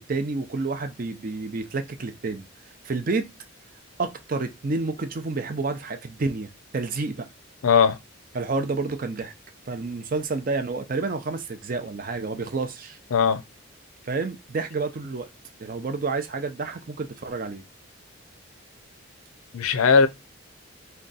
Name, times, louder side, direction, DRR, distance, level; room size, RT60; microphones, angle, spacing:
voice 1, 0.0-2.4 2.8-3.3 4.0-7.3 8.3-9.3 9.7-13.0 14.0-15.3 15.6-17.6, right 3 dB, 40° right, 0.5 m, -29 dB
voice 2, 7.6-8.0 13.1-13.4 19.5-20.1, left 6 dB, 90° left, 0.5 m, -18 dB
3.7 x 2.2 x 3.9 m
head